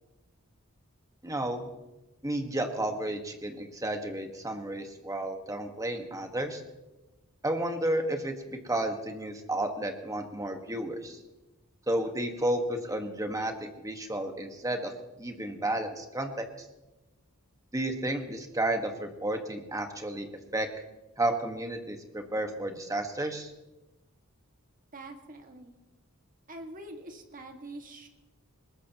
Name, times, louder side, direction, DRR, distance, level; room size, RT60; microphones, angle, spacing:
voice 1, 1.2-1.6 2.2-6.6 7.4-11.2 11.9-14.9 15.2-16.4 17.7-20.7 21.2-23.5, right 1 dB, 15° right, 4 dB, 1.6 m, -32 dB
voice 2, 24.9-25.8 26.5-28.1, right 1 dB, 40° right, 3 dB, 2.0 m, -44 dB
21.5 x 20.0 x 3.1 m, 1.0 s
head